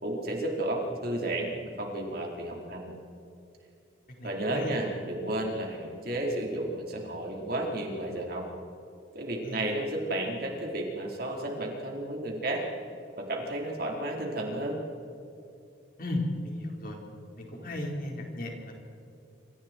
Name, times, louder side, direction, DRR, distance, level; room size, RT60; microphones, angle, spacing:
voice 1, 0.0-2.9 4.2-8.4 9.1-12.6 13.2-14.8, right 1 dB, 55° right, -1 dB, 4.2 m, -32 dB
voice 2, 4.2-4.7 9.4-9.6 16.0-17.0 17.4-18.7, left 1 dB, 50° left, 0 dB, 4.6 m, -35 dB
27.0 x 27.0 x 4.6 m, 2.7 s
head